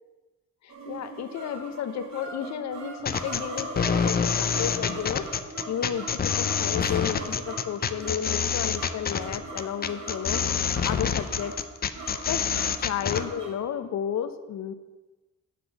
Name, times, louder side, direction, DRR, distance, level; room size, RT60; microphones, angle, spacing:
voice 1, 0.6-5.3 5.7-10.4 10.8-11.5 12.3-12.4 12.8-14.7, left 9 dB, 65° left, 11 dB, 0.8 m, -32 dB
sound 1, 0.7-13.5, right 2 dB, 65° right, 2.7 m, -40 dB
sound 2, 3.0-13.2, left 7 dB, 30° left, 0.6 m, -27 dB
7.5 x 6.0 x 7.0 m, 1.2 s
cardioid pair, 90°, 30 cm